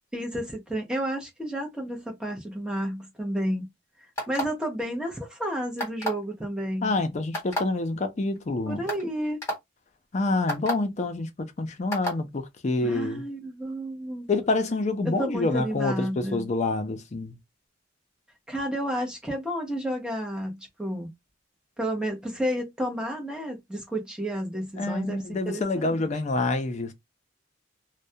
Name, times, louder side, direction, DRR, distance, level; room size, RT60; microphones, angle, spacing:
voice 1, 0.1-3.7 4.3-6.9 8.7-9.4 12.8-14.3 15.0-16.5 18.5-21.1 21.8-26.0, equal, 5° right, 0.6 m, -31 dB
sound 1, 4.1-4.6 5.8-6.2 7.3-7.6 8.3-8.4 8.9-9.0 9.4-9.5 10.5-10.7 11.9-12.2, equal, 15° left, 1.2 m, -29 dB
voice 2, 6.8-8.8 10.1-13.2 14.3-17.4 24.8-26.9, left 2 dB, 35° left, 0.4 m, -27 dB
2.3 x 2.1 x 2.7 m
head